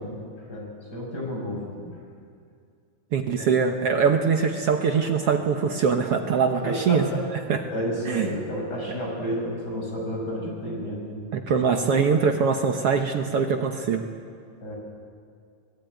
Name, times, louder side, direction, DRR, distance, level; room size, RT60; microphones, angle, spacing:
voice 1, 0.0-2.0 6.6-7.2 7.7-11.3 14.6-14.7, equal, 30° left, -1 dB, 6.4 m, -31 dB
voice 2, 3.1-7.0 7.5-7.6 8.1-8.3 11.3-14.0, right 6 dB, 60° right, 4 dB, 1.7 m, -23 dB
24.5 x 19.0 x 9.2 m, 2.3 s
omnidirectional pair, 3.8 m